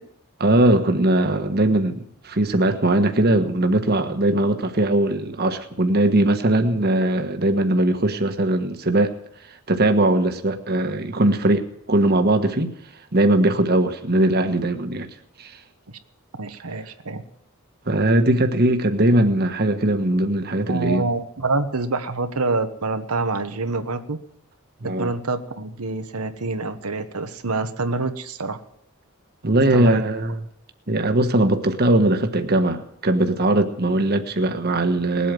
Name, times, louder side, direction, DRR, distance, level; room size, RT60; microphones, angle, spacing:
voice 1, 0.4-9.1 9.7-12.7 13.1-15.1 15.4-15.5 17.9-21.1 24.8-25.1 29.4-30.4 30.9-35.3, right 1 dB, 45° right, 7 dB, 1.4 m, -20 dB
voice 2, 16.4-17.2 18.3-18.4 20.7-24.2 25.0-28.6 29.7-30.0, right 3 dB, 85° right, 8 dB, 1.2 m, -26 dB
20.0 x 8.5 x 7.7 m, 0.73 s
head